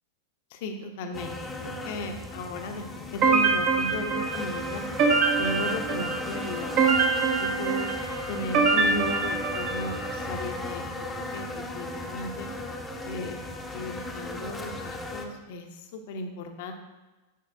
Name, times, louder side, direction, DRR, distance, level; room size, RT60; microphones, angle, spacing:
voice 1, 0.5-4.8 5.4-6.8 7.4-7.9 8.3-10.9 11.1-12.5 13.0-13.4 13.7-16.7, left 2 dB, 50° left, 5 dB, 0.9 m, -36 dB
sound 1, 1.1-15.3, left 1 dB, 10° left, 0.8 m, -36 dB
sound 2, 3.2-10.1, right 4 dB, 40° right, 1.0 m, -25 dB
11.0 x 4.9 x 2.8 m, 1.1 s
figure-of-eight pair, 90°, 0 cm